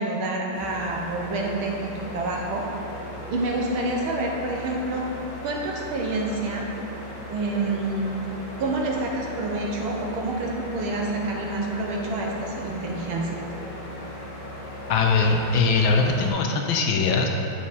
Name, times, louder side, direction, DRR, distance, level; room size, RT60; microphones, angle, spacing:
voice 1, 0.0-2.7 3.3-5.0 5.4-6.7 7.3-8.1 8.6-13.4, right 2 dB, 80° right, -1 dB, 1.9 m, -28 dB
sound 1, 0.5-16.3, equal, 40° left, 2.0 m, -37 dB
voice 2, 14.9-17.3, left 4 dB, 75° left, 2 dB, 1.4 m, -21 dB
8.6 x 6.2 x 4.2 m, 2.9 s
omnidirectional pair, 2.3 m